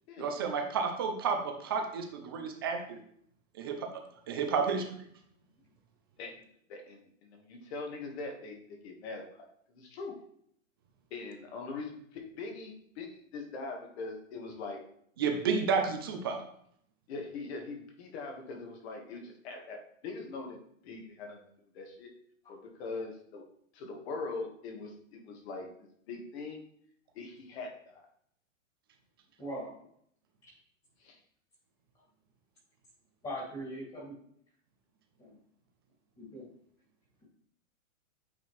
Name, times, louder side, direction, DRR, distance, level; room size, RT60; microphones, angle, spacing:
voice 1, 0.2-3.0 3.5-5.0 15.2-16.4, right 5 dB, 20° right, 4 dB, 0.3 m, -31 dB
voice 2, 6.2-10.2 11.1-14.8 17.1-21.5 21.7-22.1 22.5-23.5 23.7-26.6 27.1-28.0 31.0-31.2, left 3 dB, 50° left, 2 dB, 1.6 m, -42 dB
voice 3, 33.2-34.1 35.2-35.4 36.2-36.5, equal, 15° left, -4 dB, 2.2 m, -40 dB
8.3 x 4.3 x 3.2 m, 0.68 s
hypercardioid pair, 150°, 41 cm